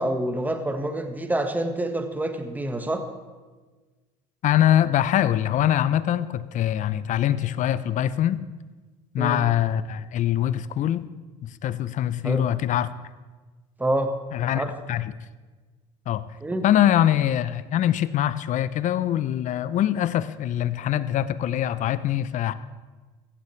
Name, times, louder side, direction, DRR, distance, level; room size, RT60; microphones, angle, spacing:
voice 1, 0.0-3.0 9.2-9.4 12.2-12.5 13.8-14.1 14.5-14.7 16.4-16.7, right 1 dB, 10° right, 7 dB, 1.5 m, -27 dB
voice 2, 4.4-8.4 9.1-11.1 11.4-12.9 14.3-15.1 16.1-16.2 16.6-22.5, left 11 dB, 45° left, 16 dB, 0.7 m, -23 dB
16.0 x 14.5 x 3.3 m, 1.3 s
hypercardioid pair, 80°, 17 cm